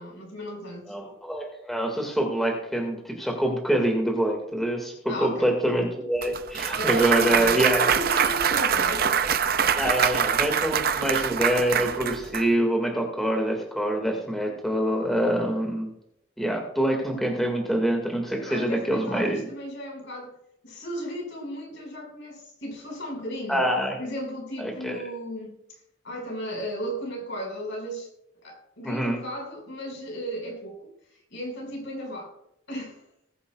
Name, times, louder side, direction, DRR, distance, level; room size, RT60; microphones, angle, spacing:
voice 1, 0.0-1.0 5.1-5.5 6.8-9.2 18.3-20.3 20.6-23.7 24.0-25.8 26.0-28.1 28.4-30.9 31.3-32.3 32.7-33.0, equal, 60° left, 0 dB, 5.2 m, -35 dB
voice 2, 0.9-7.9 9.7-15.9 16.4-19.5 23.5-24.0 24.6-25.0 28.8-29.2, right 1 dB, ahead, 0 dB, 1.9 m, -25 dB
Clapping / Cheering / Applause, 6.2-12.4, right 7 dB, 45° right, 0.5 m, -24 dB
20.0 x 10.0 x 2.4 m, 0.78 s
head